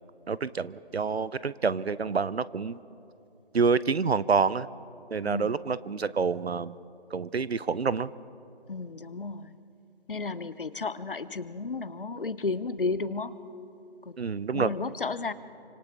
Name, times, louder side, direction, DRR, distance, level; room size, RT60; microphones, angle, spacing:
voice 1, 0.3-2.8 3.5-4.7 5.1-6.8 7.1-8.1 14.2-14.8, right 5 dB, 70° right, 18 dB, 0.7 m, -27 dB
voice 2, 8.7-9.6 10.1-13.4 14.0-14.1 14.5-15.3, left 4 dB, 55° left, 15 dB, 0.8 m, -33 dB
28.5 x 26.0 x 3.5 m, 2.8 s
figure-of-eight pair, 160°, 33 cm